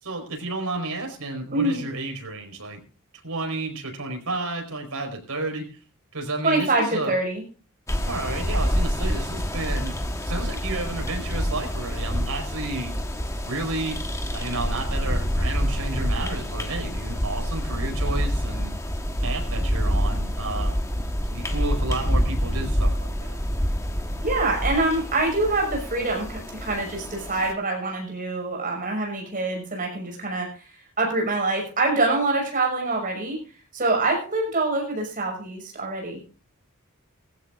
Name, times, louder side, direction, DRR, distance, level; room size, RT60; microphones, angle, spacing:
voice 1, 0.0-2.8 3.2-5.7 6.1-7.1 8.0-10.0 10.2-12.9 13.4-14.0 14.3-18.7 19.2-20.7 21.3-23.3, right 2 dB, 80° right, 2 dB, 4.8 m, -31 dB
voice 2, 6.4-7.4 21.3-21.4 24.2-30.7 31.0-33.4 33.7-36.2, right 2 dB, 40° right, 1 dB, 6.1 m, -25 dB
sound 1, 7.9-27.5, equal, 15° left, 1.3 m, -27 dB
19.0 x 15.5 x 2.5 m, 0.35 s
head